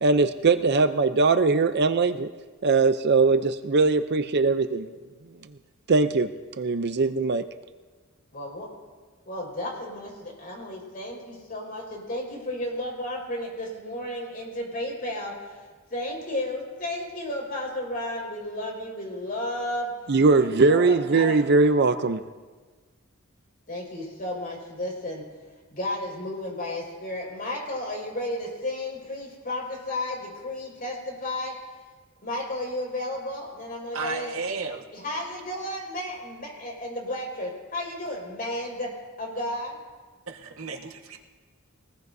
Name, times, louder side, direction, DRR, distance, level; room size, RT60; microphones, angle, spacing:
voice 1, 0.0-2.3 2.6-4.9 5.9-6.3 6.6-7.4 20.1-22.2, right 3 dB, 50° right, 9 dB, 0.6 m, -21 dB
voice 2, 8.3-8.7 9.2-15.3 15.9-19.9 20.3-21.5 23.7-25.2 25.7-31.5 32.2-34.3 34.9-38.9 39.2-39.7, left 1 dB, 45° left, -1 dB, 5.0 m, -33 dB
voice 3, 33.9-34.8 40.3-41.2, right 4 dB, 80° right, 3 dB, 1.5 m, -33 dB
24.0 x 19.5 x 2.7 m, 1.4 s
head